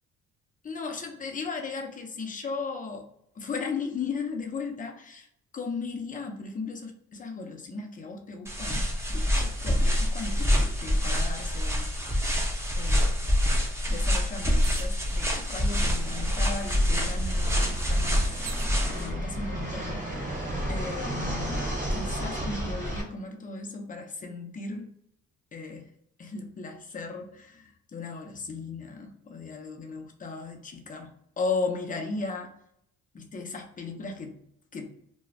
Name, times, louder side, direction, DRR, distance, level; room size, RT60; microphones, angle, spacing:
voice 1, 0.6-3.1 3.3-5.3 5.5-11.9 12.8-13.1 13.9-18.3 18.8-20.4 20.7-24.9 25.5-25.9 26.2-32.5 33.1-34.4 34.7-34.9, left 4 dB, 25° left, 3 dB, 0.6 m, -36 dB
sound 1, 8.5-19.1, left 1 dB, 10° right, 0.8 m, -26 dB
sound 2, 14.6-15.1 16.0-16.1 16.4-18.8 19.6-20.1, right 8 dB, 80° right, 0.5 m, -45 dB
Fixed-wing aircraft airplane, 15.6-23.0, right 1 dB, 25° right, 1.2 m, -32 dB
2.4 x 2.2 x 3.2 m, 0.72 s
cardioid pair, 90°, 30 cm